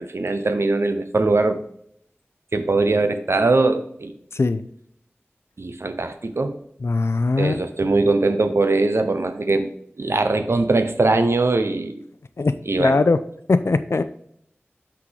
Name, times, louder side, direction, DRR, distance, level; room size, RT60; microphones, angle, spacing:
voice 1, 0.0-1.6 2.5-4.1 5.6-6.6 7.4-9.7 10.0-12.0 12.7-13.0, right 3 dB, 80° right, 9 dB, 0.6 m, -21 dB
voice 2, 6.8-7.6 12.4-13.2 13.5-14.0, left 3 dB, 85° left, 12 dB, 0.4 m, -20 dB
6.0 x 5.8 x 3.3 m, 0.69 s
wide cardioid pair, 55°, 4 cm